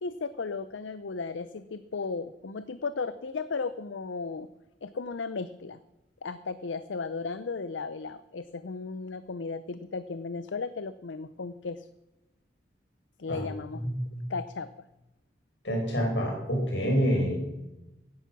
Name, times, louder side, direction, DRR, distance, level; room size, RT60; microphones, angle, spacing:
voice 1, 0.0-4.5 4.8-5.8 6.2-11.9 13.2-13.8 14.3-14.7 17.1-17.3, left 4 dB, 90° left, 13 dB, 0.6 m, -35 dB
voice 2, 13.7-14.3 15.6-17.4, equal, 70° left, 0 dB, 5.6 m, -27 dB
16.5 x 10.5 x 6.0 m, 0.98 s
head